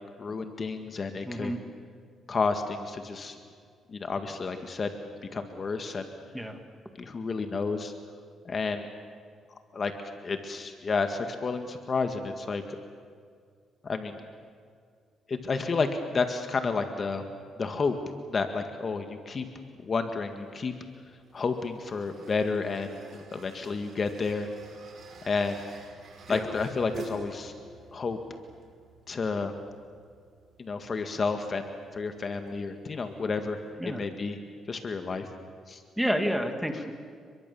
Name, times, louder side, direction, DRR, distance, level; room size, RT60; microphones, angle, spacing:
voice 1, 0.2-1.5 2.3-3.4 3.9-4.9 5.3-6.1 7.0-7.9 8.5-8.9 9.7-9.9 10.2-12.6 13.8-14.2 15.3-17.2 17.6-17.9 18.3-19.5 19.8-20.7 21.3-24.5 25.2-25.6 26.3-27.5 27.9-28.2 29.1-29.5 30.6-34.4 34.7-35.3 35.7-35.8, left 4 dB, 40° left, 6 dB, 1.9 m, -31 dB
voice 2, 1.3-1.6 6.3-6.6 26.3-26.5 33.8-34.0 36.0-36.9, equal, ahead, 5 dB, 2.6 m, -29 dB
sound 1, 20.4-33.7, right 4 dB, 60° right, 5.5 m, -50 dB
29.5 x 22.0 x 7.2 m, 2.1 s
cardioid pair, 100°, 0 cm